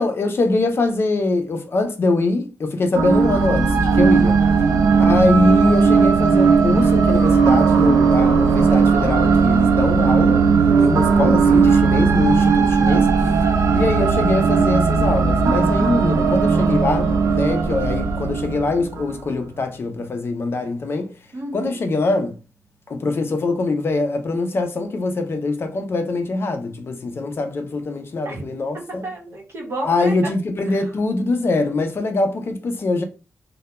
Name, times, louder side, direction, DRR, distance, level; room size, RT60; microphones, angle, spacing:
voice 1, 0.0-4.4 5.0-13.3 13.7-21.1 21.5-22.3 22.9-29.1 29.8-33.0, left 2 dB, 45° left, 0.4 m, -23 dB
sound 1, 3.0-19.2, right 5 dB, 85° right, 0.4 m, -17 dB
voice 2, 4.6-5.0 21.3-21.7 28.2-28.4 28.7-30.3 30.7-30.8, right 2 dB, 55° right, 0.9 m, -31 dB
Piano, 9.9-19.9 20.2-20.3, right 1 dB, 25° left, 0.8 m, -33 dB
2.1 x 2.1 x 2.9 m
wide cardioid pair, 145°, 6 cm